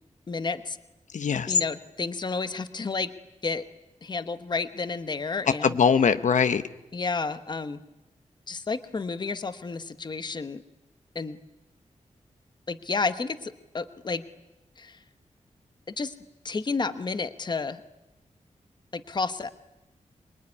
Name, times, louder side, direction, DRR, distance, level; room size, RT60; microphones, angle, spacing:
voice 1, 0.3-0.8 1.5-3.1 3.4-3.7 4.0-5.8 6.9-7.8 8.5-10.6 11.1-11.4 12.7-14.3 14.8-15.0 15.9-16.1 16.4-17.8 18.9-19.5, left 4 dB, 35° left, 10 dB, 1.1 m, -31 dB
voice 2, 1.1-1.6 5.6-6.6, left 6 dB, 75° left, 10 dB, 0.9 m, -22 dB
25.0 x 22.0 x 9.7 m, 0.98 s
wide cardioid pair, 165°, 13 cm